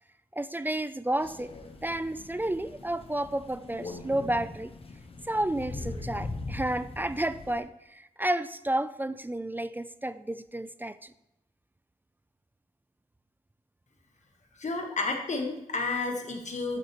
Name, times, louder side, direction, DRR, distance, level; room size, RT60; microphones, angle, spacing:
voice 1, 0.3-1.5 1.8-4.7 5.2-11.1, right 1 dB, 15° right, 13 dB, 0.3 m, -31 dB
Crow, 1.2-7.6, left 2 dB, 45° left, 0.9 m, -41 dB
voice 2, 14.6-16.8, left 3 dB, 60° left, 3 dB, 1.3 m, -31 dB
11.5 x 6.0 x 3.0 m, 0.90 s
wide cardioid pair, 105°, 14 cm